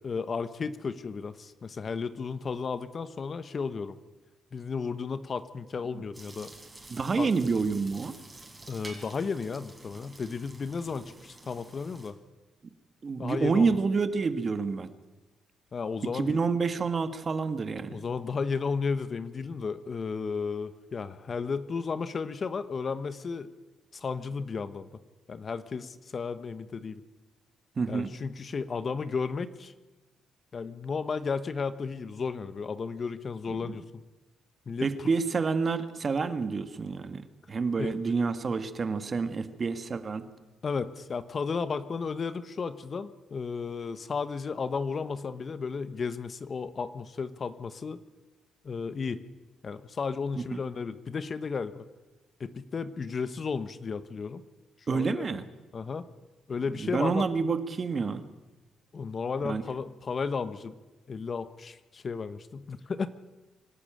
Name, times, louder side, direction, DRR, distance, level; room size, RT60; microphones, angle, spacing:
voice 1, 0.0-4.0 4.5-6.5 7.2-7.3 8.7-12.1 13.2-13.8 15.7-16.4 17.9-23.5 23.9-24.9 25.3-27.0 27.9-29.7 30.5-33.8 34.7-35.1 37.8-38.0 40.6-48.0 48.6-49.2 49.6-51.9 52.4-54.4 54.9-55.3 55.7-56.0 56.5-57.2 58.9-60.8 61.1-63.1, left 5 dB, 40° left, 13 dB, 1.1 m, -33 dB
sound 1, 6.1-12.1, right 2 dB, 15° right, 4.4 m, -49 dB
voice 2, 6.9-8.1 13.0-14.9 16.1-18.0 27.8-28.1 33.6-33.8 34.8-40.2 50.3-50.6 54.9-55.4 56.7-58.2 59.4-59.6, right 4 dB, 40° right, 10 dB, 1.6 m, -28 dB
24.5 x 12.0 x 9.0 m, 1.2 s
cardioid pair, 90°, 0 cm